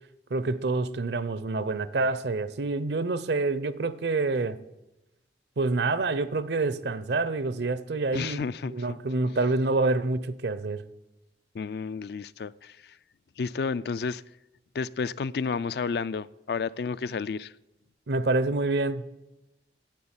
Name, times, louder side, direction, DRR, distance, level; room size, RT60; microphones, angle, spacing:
voice 1, 0.3-4.6 5.6-10.8 18.1-19.2, right 3 dB, 75° right, 0.7 m, -27 dB
voice 2, 8.1-8.8 11.5-12.8 13.4-14.2 14.7-17.5, left 5 dB, 65° left, 0.4 m, -31 dB
10.5 x 7.9 x 8.8 m
head